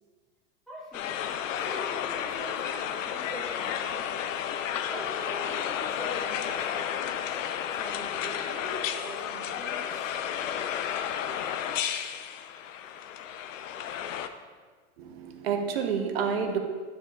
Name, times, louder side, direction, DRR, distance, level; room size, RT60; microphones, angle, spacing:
voice 1, 0.7-1.2 1.5-4.1 4.8-7.1 7.7-10.1, right 1 dB, ahead, -9 dB, 0.5 m, -43 dB
sound 1, 0.9-14.3, left 9 dB, 80° left, 0.7 m, -32 dB
voice 2, 15.0-16.6, right 6 dB, 50° right, 4 dB, 1.0 m, -29 dB
11.5 x 7.4 x 2.4 m, 1.5 s
supercardioid pair, 170°, 38 cm